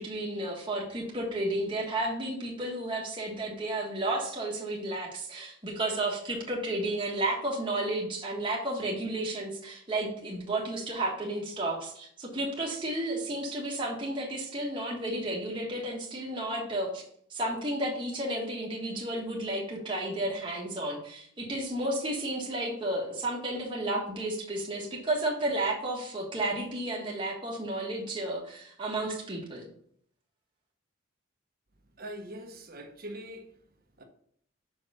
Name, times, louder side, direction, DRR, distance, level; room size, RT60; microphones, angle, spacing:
voice 1, 0.0-17.0 17.3-29.7, right 1 dB, 25° right, -3 dB, 1.4 m, -32 dB
voice 2, 32.0-33.4 34.0-34.1, right 1 dB, 45° right, 4 dB, 1.1 m, -42 dB
5.6 x 5.4 x 5.6 m, 0.64 s
head